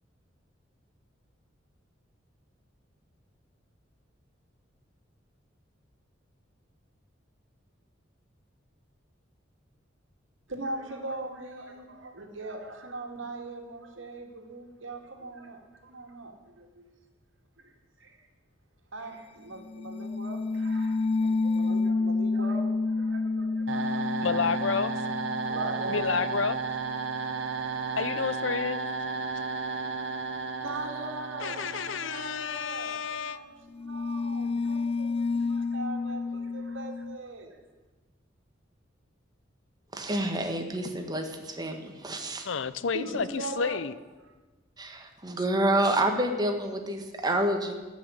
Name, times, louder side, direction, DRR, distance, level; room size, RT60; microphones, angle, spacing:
voice 1, 10.5-16.9 17.6-18.3 18.9-24.4 25.4-26.1 30.6-37.6 42.9-43.8, right 2 dB, 85° right, 3 dB, 2.2 m, -40 dB
sound 1, 19.6-27.2 33.7-37.2, left 3 dB, 30° left, 0.3 m, -30 dB
sound 2, 23.7-32.6, right 4 dB, 70° right, 1.3 m, -33 dB
voice 2, 24.2-24.9 25.9-26.6 28.0-28.8 31.4-33.4 42.4-43.9, left 5 dB, 75° left, 16 dB, 0.6 m, -30 dB
voice 3, 39.9-42.5 44.8-47.7, right 1 dB, 20° right, 4 dB, 1.6 m, -28 dB
14.5 x 6.2 x 9.7 m, 1.2 s
head